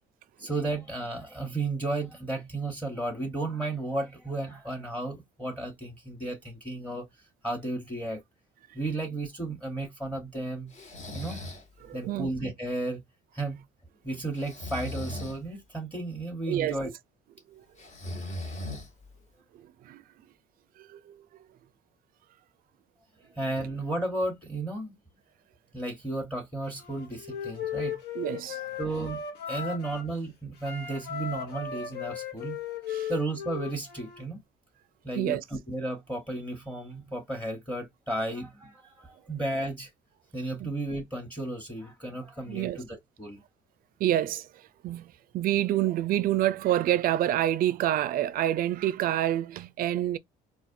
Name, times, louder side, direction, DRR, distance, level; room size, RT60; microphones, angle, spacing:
voice 1, 0.4-7.1 7.4-8.2 8.7-10.7 11.1-11.4 11.9-13.0 13.3-13.6 14.0-16.9 23.3-25.0 25.7-28.0 28.8-32.6 33.1-34.4 35.0-39.9 40.3-43.4, right 2 dB, 10° left, 1.1 m, -33 dB
Breathing, 10.7-11.7 14.4-15.4 17.8-19.2, left 1 dB, 45° left, 1.4 m, -38 dB
voice 2, 11.8-12.3 16.5-16.8 17.5-17.6 19.8-20.0 20.8-21.2 28.2-28.7 32.9-33.1 35.2-35.4 40.6-40.7 42.5-42.8 44.0-50.2, right 12 dB, 60° right, 0.4 m, -28 dB
Wind instrument woodwind instrument, 26.7-30.1 30.6-34.2, left 8 dB, 75° left, 1.1 m, -37 dB
4.0 x 2.5 x 2.6 m
cardioid pair, 110°, 17 cm